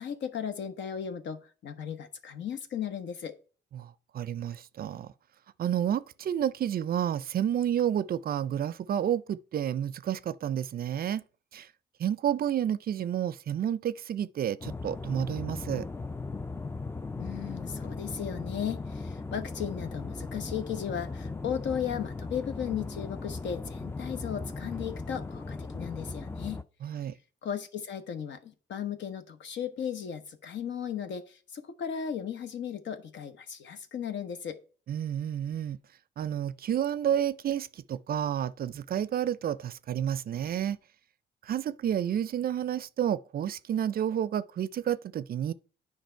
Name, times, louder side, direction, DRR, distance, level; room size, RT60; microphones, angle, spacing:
voice 1, 0.0-3.3 17.2-26.6 27.4-34.6, left 8 dB, 65° left, 1.0 m, -36 dB
voice 2, 3.7-5.1 5.6-11.2 11.5-11.7 12.0-15.9 26.8-27.1 34.9-35.8 36.2-40.8 41.4-45.5, right 10 dB, 50° right, 0.4 m, -30 dB
sound 1, 14.6-26.6, left 3 dB, 10° left, 0.4 m, -38 dB
9.2 x 5.0 x 4.4 m
cardioid pair, 90°, 20 cm